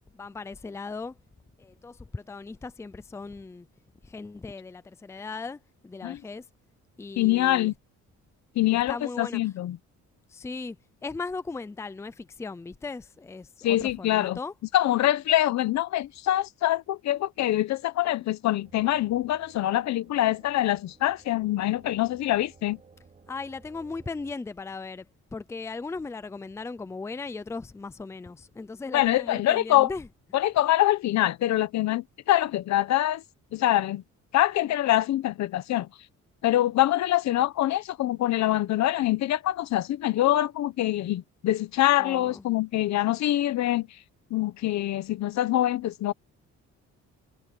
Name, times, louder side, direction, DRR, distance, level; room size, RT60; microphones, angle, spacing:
voice 1, 0.1-1.1 1.6-3.7 4.0-6.4 7.0-7.7 8.7-9.4 10.3-10.8 11.0-14.5 23.3-25.1 25.3-30.1 42.0-42.5, left 4 dB, 10° left, 0.5 m, -37 dB
voice 2, 7.2-7.7 8.6-9.8 13.6-14.4 14.7-22.8 28.9-29.9 30.3-33.2 33.5-34.0 34.3-35.9 36.4-43.9 44.3-46.1, left 14 dB, 65° left, 1.0 m, -24 dB
sound 1, 18.6-24.3, right 4 dB, 25° right, 4.8 m, -56 dB
cardioid pair, 160°, 30 cm